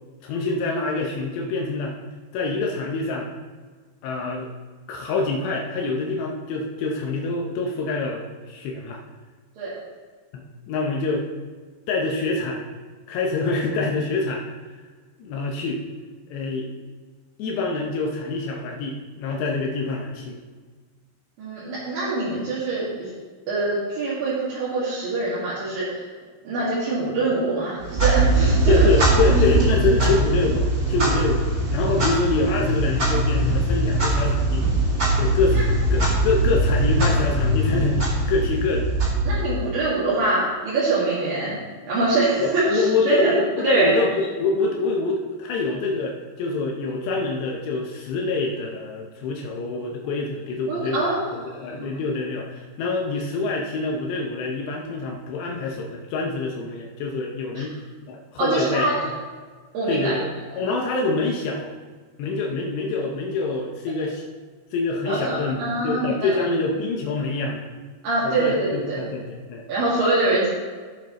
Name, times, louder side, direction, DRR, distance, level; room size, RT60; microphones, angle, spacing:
voice 1, 0.2-2.0 2.3-3.3 4.0-4.5 4.9-9.0 10.3-11.3 11.9-12.7 13.1-14.4 15.2-15.8 16.3-16.7 17.4-20.4 28.7-34.7 35.2-35.6 35.9-38.9 42.4-51.1 51.3-57.8 58.1-59.0 59.9-60.3 60.6-61.7 62.2-64.2 64.7-67.6 68.2-69.6, left 3 dB, 75° left, 0 dB, 2.9 m, -26 dB
voice 2, 21.4-23.1 23.5-26.0 26.4-28.9 29.3-30.1 39.2-41.6 41.9-43.4 43.6-43.9 50.7-51.3 51.7-51.9 57.6-57.7 58.4-59.1 59.7-60.1 65.1-66.3 68.0-69.0 69.7-70.5, right 2 dB, 55° right, -9 dB, 3.5 m, -24 dB
Clock, 27.8-39.8, right 1 dB, 35° right, 1.5 m, -21 dB
15.5 x 7.1 x 3.1 m, 1.5 s
omnidirectional pair, 5.3 m